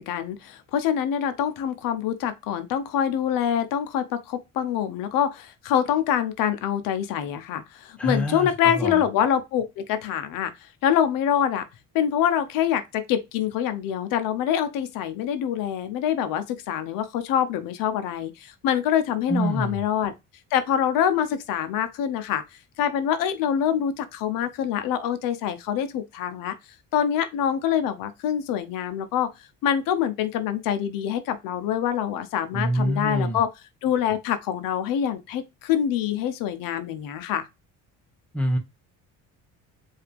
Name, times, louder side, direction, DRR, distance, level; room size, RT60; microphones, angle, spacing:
voice 1, 0.0-11.6 11.9-20.1 20.5-22.4 22.8-26.6 26.9-29.3 29.6-33.5 33.8-37.5, left 9 dB, 75° left, 0.8 m, -25 dB
voice 2, 8.0-9.0 19.3-19.8 32.5-33.4 38.3-38.6, equal, 5° left, 1.1 m, -26 dB
4.8 x 2.8 x 3.4 m
cardioid pair, 150°, 33 cm